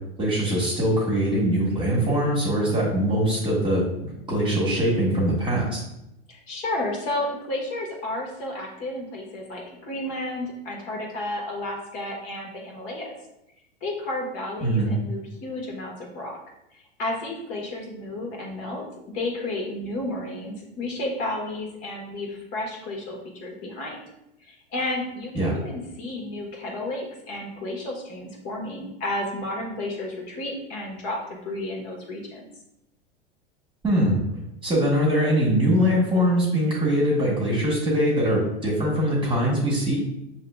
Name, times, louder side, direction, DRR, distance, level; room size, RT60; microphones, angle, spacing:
voice 1, 0.2-5.8 14.6-14.9 25.3-25.5 33.8-34.2 34.6-40.0, equal, 15° right, -4 dB, 1.3 m, -22 dB
voice 2, 6.3-13.1 13.8-16.4 16.7-18.8 19.1-24.0 24.4-32.5, left 1 dB, 50° left, 0 dB, 1.4 m, -32 dB
6.5 x 2.9 x 2.3 m, 0.87 s
hypercardioid pair, 100°, 31 cm